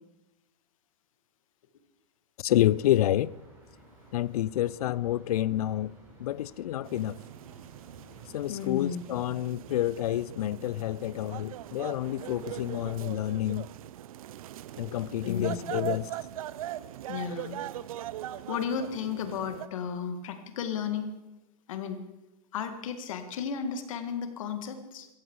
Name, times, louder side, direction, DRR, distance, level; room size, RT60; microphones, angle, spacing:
voice 1, 2.4-3.3 4.1-5.9 6.2-7.2 8.3-13.7 14.8-16.1, left 13 dB, 80° left, 0.5 m, -28 dB
sound 1, 2.7-8.3, right 1 dB, 15° right, 4.3 m, -55 dB
sound 2, 6.8-19.7, right 12 dB, 65° right, 0.5 m, -41 dB
voice 2, 8.5-9.0 15.2-15.6 17.1-17.6 18.5-21.2 21.7-22.0 22.5-25.1, left 7 dB, 60° left, 1.9 m, -34 dB
17.0 x 14.5 x 4.7 m
supercardioid pair, 175°, 19 cm